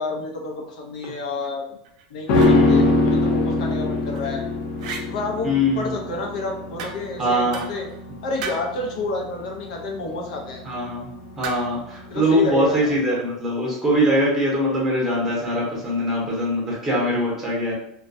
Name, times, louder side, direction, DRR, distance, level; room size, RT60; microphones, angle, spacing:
voice 1, 0.0-1.7 2.1-4.4 5.1-7.9 8.2-10.6 12.1-12.9, left 3 dB, 85° left, 1 dB, 0.6 m, -29 dB
sound 1, 1.8-2.6 3.9-4.4 4.8-5.1 6.8-7.2 7.5-8.0 8.4-8.8 11.4-11.8, right 5 dB, 65° right, 0.4 m, -35 dB
sound 2, 2.3-11.7 12.0-12.1, left 2 dB, 50° left, 0.4 m, -23 dB
voice 2, 2.4-2.9 5.4-5.9 7.2-7.6 10.6-11.1 11.4-17.7, equal, 10° right, -4 dB, 0.8 m, -22 dB
2.2 x 2.1 x 2.6 m, 0.77 s
supercardioid pair, 165°, 4 cm